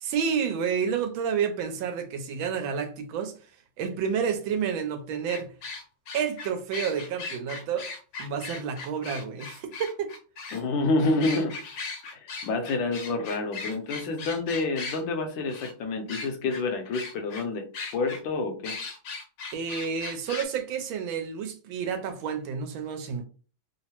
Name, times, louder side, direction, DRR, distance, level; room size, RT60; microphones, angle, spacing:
voice 1, 0.0-3.3 3.8-5.5 6.1-7.9 8.2-10.1 19.5-23.3, right 7 dB, 75° right, 1.3 m, -30 dB
sound 1, 5.3-10.6 11.2-15.0 15.5-15.7 16.1-16.6 16.9-17.4 17.7-18.2 18.6-20.4, left 4 dB, 90° left, 1.6 m, -38 dB
voice 2, 10.5-11.5 12.1-17.6 17.9-18.7, left 3 dB, 75° left, 1.4 m, -28 dB
3.6 x 2.0 x 2.8 m
omnidirectional pair, 2.3 m